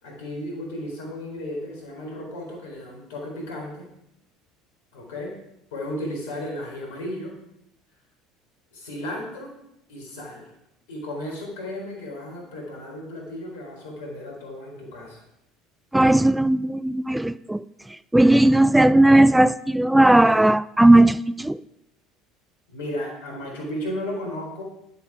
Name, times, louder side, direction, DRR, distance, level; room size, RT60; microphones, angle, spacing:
voice 1, 0.0-3.9 4.9-5.4 5.7-7.3 8.7-9.5 9.9-10.5 10.9-15.2 22.7-24.6, left 1 dB, 75° left, 4.0 m, -34 dB
voice 2, 15.9-17.6 18.1-21.6, right 1 dB, 5° right, 0.3 m, -17 dB
11.0 x 8.1 x 4.9 m
hypercardioid pair, 70°, 0 cm